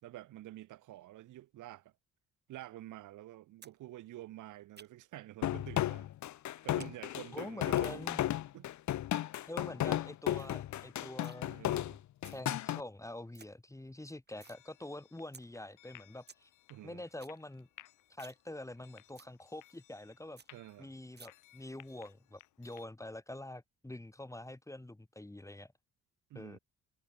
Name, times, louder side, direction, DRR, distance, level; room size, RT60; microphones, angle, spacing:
voice 1, 0.0-1.9 2.5-6.1 6.6-8.1 8.5-8.7 10.4-10.6 11.5-12.0 16.7-17.0 20.5-20.9 26.3-26.6, right 15 dB, 85° right, 3.1 m, -49 dB
sound 1, 3.6-3.8 4.1-5.2 5.8-5.9 6.2-6.9 7.2-7.8 8.9-9.2 9.7-9.8 10.1-10.2 10.4-10.6 10.9-11.4 12.0-12.4 12.8-12.9 13.1-13.5 13.9-14.6 15.0-15.1 15.3-15.4 15.8-15.9 16.1-16.4 16.8-16.9 17.1-17.4 17.7-17.8 18.1-18.4 18.7-18.8 19.2-19.3 19.7-19.8 20.0-20.1 20.4-20.5 21.2-21.3, right 5 dB, 35° right, 6.3 m, -55 dB
sound 2, 5.4-12.8, left 13 dB, 70° left, 1.1 m, -34 dB
voice 2, 7.3-8.2 9.5-11.5 12.3-16.5 16.8-17.7 18.1-20.4 20.8-25.7 26.3-26.6, left 1 dB, 10° left, 3.1 m, -46 dB
sound 3, 14.3-22.9, left 15 dB, 90° left, 4.9 m, -61 dB
cardioid pair, 90°, 30 cm